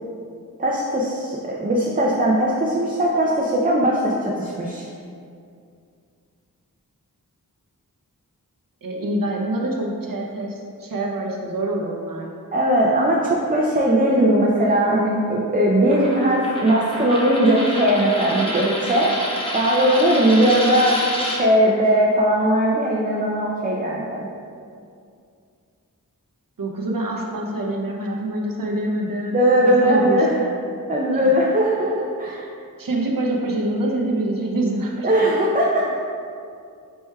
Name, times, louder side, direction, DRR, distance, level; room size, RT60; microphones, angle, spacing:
voice 1, 0.6-4.9 12.5-19.2 19.5-21.0 21.3-24.3 29.3-30.4 30.9-32.4 35.0-35.9, right 1 dB, 25° right, -4 dB, 0.4 m, -19 dB
voice 2, 8.8-12.3 26.6-29.4 29.6-30.6 31.1-31.3 32.2-32.5 32.8-35.1, right 1 dB, 70° right, -1 dB, 0.7 m, -26 dB
Coin (dropping), 15.9-21.4, equal, 15° left, 0.7 m, -29 dB
4.6 x 4.2 x 2.2 m, 2.4 s
wide cardioid pair, 45°, 35 cm